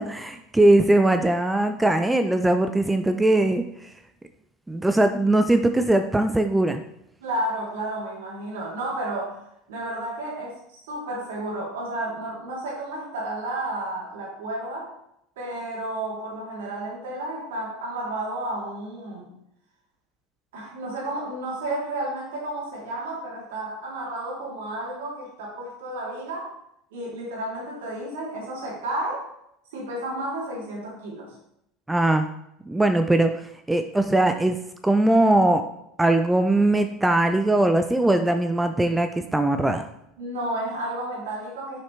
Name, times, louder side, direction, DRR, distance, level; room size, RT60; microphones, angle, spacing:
voice 1, 0.0-3.6 4.7-6.8 31.9-32.3 32.7-33.3 33.7-34.6 34.8-35.6 36.0-39.8, right 1 dB, 10° right, 7 dB, 0.5 m, -20 dB
voice 2, 7.2-9.4 9.7-14.9 15.4-19.3 20.5-26.5 26.9-29.2 29.7-31.3 40.2-41.8, right 1 dB, 80° right, -3 dB, 2.8 m, -32 dB
7.5 x 5.7 x 3.2 m, 0.78 s
hypercardioid pair, 85°, 0 cm